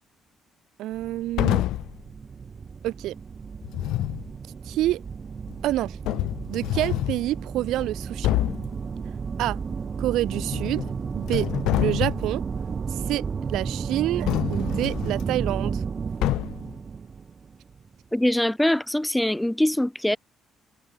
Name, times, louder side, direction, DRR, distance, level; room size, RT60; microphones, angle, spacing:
voice 1, 0.8-1.6 2.8-3.1 4.6-5.0 5.6-6.0 6.5-8.4 9.4-9.6 10.0-10.8 11.1-11.5 11.8-12.4 12.9-13.2 13.5-15.8, right 15 dB, 80° right, 1.1 m, -27 dB
sound 1, 0.9-17.9, right 5 dB, 30° right, 3.8 m, -33 dB
sound 2, 1.4-2.0 3.6-4.3 5.5-5.6 6.0-7.3 7.8-7.9 8.2-8.7 10.3-10.9 11.2-12.3 14.3-15.2 16.2-16.7, left 16 dB, 90° left, 1.2 m, -27 dB
voice 2, 18.1-20.2, left 1 dB, 5° left, 1.2 m, -23 dB
cardioid pair, 150°, 0 cm